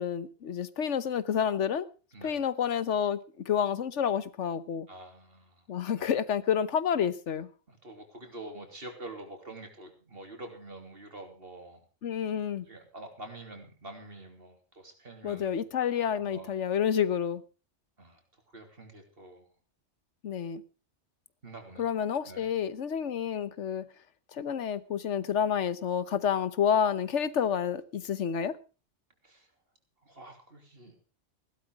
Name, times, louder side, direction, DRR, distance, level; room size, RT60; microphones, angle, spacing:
voice 1, 0.0-1.9 2.2-3.2 3.5-4.9 5.7-7.5 12.0-12.6 15.2-17.4 20.2-20.6 21.8-23.8 24.3-28.6, left 8 dB, 90° left, 1.3 m, -29 dB
voice 2, 2.1-2.4 4.9-5.7 6.0-6.1 7.7-11.8 12.7-15.6 16.2-16.6 18.0-18.2 18.5-19.5 21.4-21.9 22.2-22.5 29.2-29.5 30.0-31.0, right 2 dB, 55° right, 3.4 m, -46 dB
15.5 x 12.0 x 4.7 m
omnidirectional pair, 1.2 m